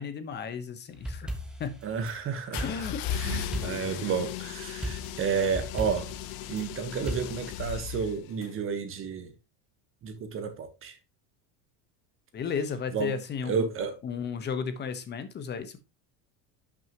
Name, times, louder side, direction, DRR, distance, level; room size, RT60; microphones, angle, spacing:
voice 1, 0.0-1.3 1.6-1.8 2.6-3.0 12.3-13.7 14.0-15.8, left 6 dB, 25° left, 1.1 m, -34 dB
sound 1, 0.9-2.2 2.6-4.0 4.8-6.7 7.1-7.4, equal, ahead, 1.1 m, -37 dB
voice 2, 1.8-6.1 6.5-9.3 10.0-11.0 12.9-13.1 13.4-14.0, right 6 dB, 30° right, 1.2 m, -31 dB
sound 2, 2.5-8.5, left 10 dB, 65° left, 1.0 m, -37 dB
11.0 x 6.3 x 3.0 m
cardioid pair, 160°, 41 cm